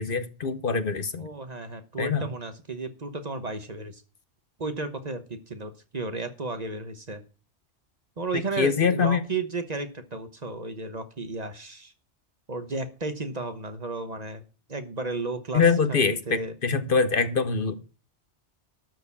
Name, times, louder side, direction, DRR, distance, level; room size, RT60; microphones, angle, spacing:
voice 1, 0.0-1.3 2.0-2.3 8.6-9.2 15.5-17.8, left 5 dB, 55° left, 1.0 m, -24 dB
voice 2, 1.1-4.0 4.6-7.2 8.2-11.9 12.5-14.4 14.7-15.6 15.9-16.5, right 3 dB, 40° right, 1.1 m, -33 dB
12.5 x 4.5 x 8.3 m
omnidirectional pair, 1.2 m